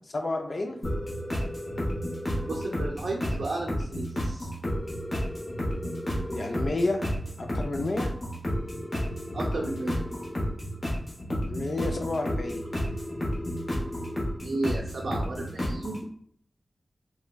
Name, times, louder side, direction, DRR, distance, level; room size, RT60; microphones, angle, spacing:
voice 1, 0.1-0.8 6.3-7.0 7.4-8.1 11.5-12.6, left 2 dB, 55° left, 3 dB, 0.4 m, -30 dB
sound 1, 0.8-16.0, equal, 40° left, 0.9 m, -31 dB
voice 2, 2.5-4.5 9.3-10.0 14.4-16.0, right 2 dB, 80° right, -2 dB, 0.4 m, -33 dB
3.5 x 2.1 x 2.2 m, 0.63 s
wide cardioid pair, 100°, 0 cm